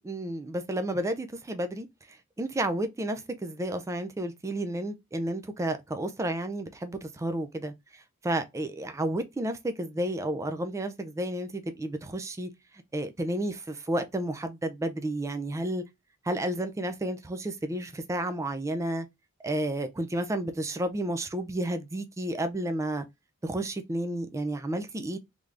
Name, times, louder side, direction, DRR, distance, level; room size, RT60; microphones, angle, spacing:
voice 1, 0.0-1.9 2.4-7.7 8.2-12.5 12.9-15.8 16.3-19.1 19.4-23.0 23.4-25.2, right 1 dB, 15° right, 0.3 m, -31 dB
3.4 x 3.2 x 2.4 m
head